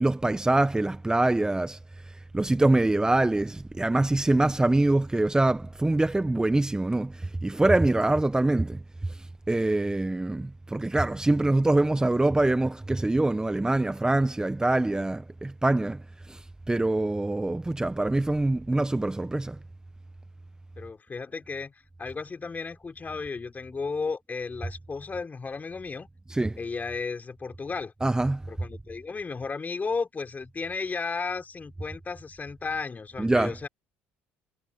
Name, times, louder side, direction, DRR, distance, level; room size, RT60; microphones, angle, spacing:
voice 1, 0.0-1.8 2.3-9.2 9.5-16.0 16.3-19.6 26.3-26.6 28.0-28.4 33.2-33.5, right 2 dB, 10° right, 1.3 m, -24 dB
voice 2, 20.8-26.1 26.6-27.9 28.5-33.7, left 4 dB, 30° left, 4.7 m, -34 dB
hypercardioid pair, 65°, 6 cm